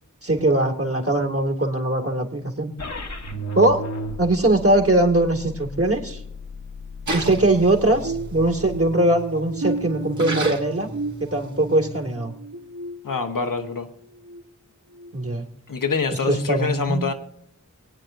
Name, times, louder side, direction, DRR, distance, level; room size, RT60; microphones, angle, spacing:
voice 1, 0.2-2.7 3.5-3.8 4.2-6.2 7.1-10.9 11.2-12.3 15.1-15.5 16.1-17.1, right 1 dB, 45° right, 3 dB, 2.4 m, -21 dB
sound 1, 2.8-8.8, left 1 dB, 55° left, 1.2 m, -35 dB
Splash splatter, 7.1-12.2, right 2 dB, 65° right, 2.4 m, -34 dB
sound 2, 8.0-13.7 14.1-14.4 14.9-15.1, right 3 dB, 90° right, 1.5 m, -34 dB
voice 2, 13.0-13.9 15.7-17.1, left 5 dB, 90° left, 5 dB, 1.2 m, -25 dB
23.5 x 9.1 x 2.6 m, 0.73 s
wide cardioid pair, 70°, 32 cm